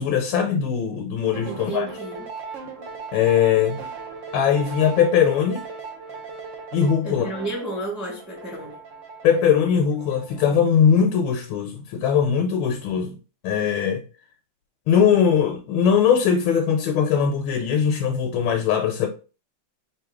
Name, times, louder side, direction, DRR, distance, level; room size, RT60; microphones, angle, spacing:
voice 1, 0.0-1.9 3.1-3.8 4.3-5.6 6.7-7.3 9.2-13.2 13.4-14.0 14.9-19.1, left 7 dB, 80° left, 1.4 m, -20 dB
sound 1, 1.3-10.7, right 4 dB, 60° right, 0.8 m, -38 dB
voice 2, 1.5-2.3 7.0-8.8, right 2 dB, ahead, 1.0 m, -32 dB
4.7 x 2.8 x 3.6 m
omnidirectional pair, 2.3 m